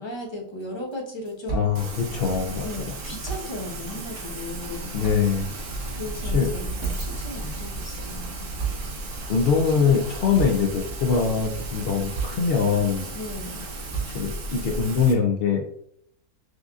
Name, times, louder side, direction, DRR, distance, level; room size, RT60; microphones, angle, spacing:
voice 1, 0.0-1.6 2.6-4.9 5.9-8.5 13.1-13.7, left 1 dB, 20° left, -3 dB, 1.0 m, -36 dB
sound 1, 0.6-0.7 0.9-1.0 1.2-2.9 3.2-8.3 8.6-9.3 9.7-10.0 10.4-10.9 11.3-11.8 12.1-13.1 13.5-14.5, right 5 dB, 15° right, 1.0 m, -36 dB
voice 2, 1.5-2.9 4.9-5.5 6.2-6.5 9.3-13.1 14.1-15.8, left 6 dB, 80° left, 1 dB, 0.5 m, -23 dB
Rain, 1.7-15.1, right 2 dB, 60° right, 1.1 m, -36 dB
sound 2, 5.0-14.8, right 1 dB, 35° right, 0.7 m, -37 dB
6.3 x 2.5 x 2.4 m, 0.67 s
omnidirectional pair, 1.6 m